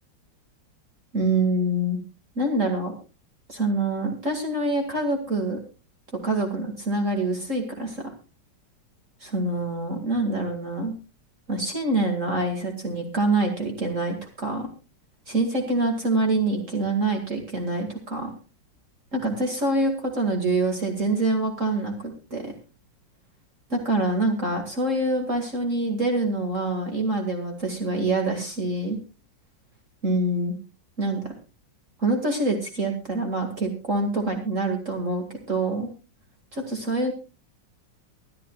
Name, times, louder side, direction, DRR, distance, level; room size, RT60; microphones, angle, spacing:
voice 1, 1.1-2.0 2.4-2.9 3.5-5.6 6.2-8.1 9.3-10.9 11.5-14.7 15.3-18.3 19.1-22.5 23.7-29.0 30.0-30.6 31.0-31.3 32.0-35.9 36.5-37.1, right 2 dB, 45° right, 3 dB, 2.5 m, -25 dB
25.0 x 11.5 x 2.4 m, 0.29 s
omnidirectional pair, 2.0 m